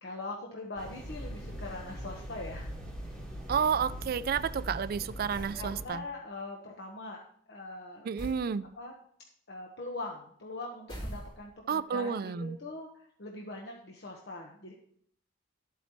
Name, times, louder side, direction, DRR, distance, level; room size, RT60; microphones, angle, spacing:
voice 1, 0.0-2.7 3.5-3.6 5.3-7.2 7.5-8.1 8.8-8.9 9.5-14.7, left 2 dB, 60° left, -1 dB, 1.2 m, -42 dB
sound 1, 0.8-5.8, equal, 5° left, 2.5 m, -41 dB
voice 2, 3.5-6.0 8.0-8.7 11.7-12.6, right 7 dB, 50° right, 16 dB, 0.3 m, -31 dB
sound 2, 5.3-5.7 8.2-8.5 10.9-11.7, equal, 25° left, 3.3 m, -41 dB
12.5 x 8.3 x 3.1 m, 0.63 s
head